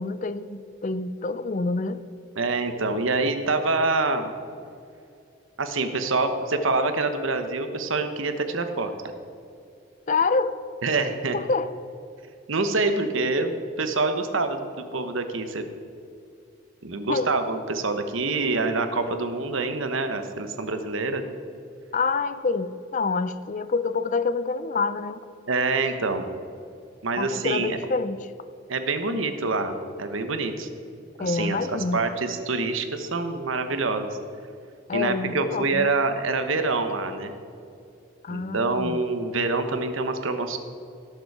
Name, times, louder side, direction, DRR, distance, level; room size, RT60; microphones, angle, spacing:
voice 1, 0.0-2.0 10.1-10.6 11.3-11.7 17.1-17.3 21.9-25.2 27.2-28.3 31.2-32.0 34.9-35.9 38.2-39.0, left 4 dB, 35° left, 13 dB, 0.4 m, -27 dB
voice 2, 2.4-4.3 5.6-8.9 10.8-11.4 12.5-13.5 13.8-15.6 16.8-21.2 25.5-26.3 27.0-27.8 28.7-30.7 31.2-34.1 34.9-37.3 38.3-40.6, right 3 dB, 75° right, 8 dB, 1.0 m, -26 dB
17.0 x 6.8 x 4.7 m, 2.5 s
head